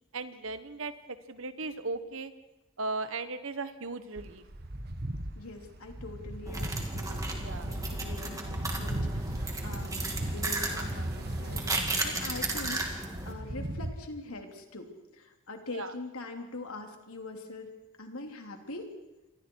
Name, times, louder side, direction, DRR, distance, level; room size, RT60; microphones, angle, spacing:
voice 1, 0.1-2.3 2.8-4.4 7.4-7.7 15.7-15.9, right 3 dB, 65° right, 11 dB, 1.4 m, -37 dB
sound 1, 4.2-13.9, right 1 dB, 45° right, 1.6 m, -37 dB
voice 2, 5.3-17.7 18.0-18.9, left 2 dB, 75° left, 3 dB, 3.2 m, -43 dB
sound 2, 6.5-13.3, right 2 dB, 15° right, 2.5 m, -35 dB
28.5 x 24.5 x 4.7 m, 1.0 s
head